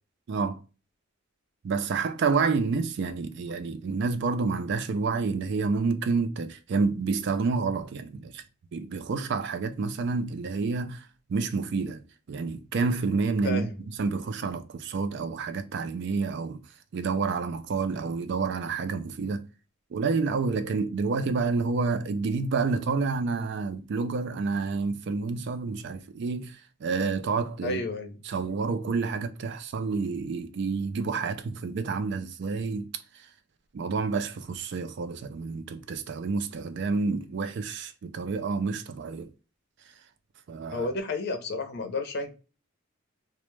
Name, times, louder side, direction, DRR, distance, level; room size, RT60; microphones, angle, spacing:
voice 1, 0.3-0.6 1.6-8.4 8.7-11.0 11.3-12.0 12.3-13.7 14.0-16.6 16.9-19.4 19.9-27.8 28.3-33.0 33.7-39.3 40.5-40.9, right 4 dB, 55° right, 0.3 m, -29 dB
voice 2, 13.4-13.7 27.6-28.1 40.7-42.3, left 2 dB, 55° left, 0.5 m, -31 dB
2.1 x 2.0 x 3.0 m
head